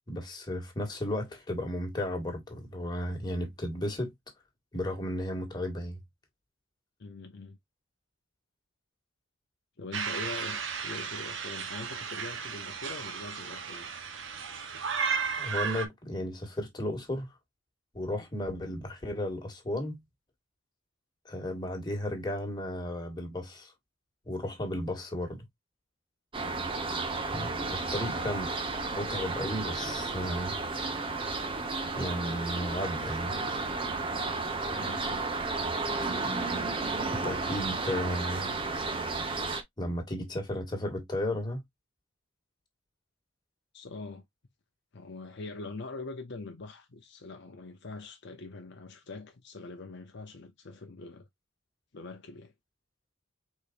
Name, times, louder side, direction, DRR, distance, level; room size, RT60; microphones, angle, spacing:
voice 1, 0.1-4.1 4.7-6.0 15.4-17.3 17.9-20.0 21.2-23.7 24.2-25.5 27.3-28.5 28.9-30.6 31.9-33.4 37.1-38.5 39.8-41.6, left 1 dB, 20° left, 1.8 m, -34 dB
voice 2, 7.0-7.6 9.8-13.9 27.9-28.3 34.7-35.3 43.7-44.2 44.9-51.3 51.9-52.5, left 3 dB, 55° left, 0.7 m, -43 dB
sound 1, 9.9-15.9, right 6 dB, 65° right, 1.1 m, -34 dB
sound 2, 26.3-39.6, right 3 dB, 25° right, 1.0 m, -33 dB
5.0 x 4.1 x 2.5 m
head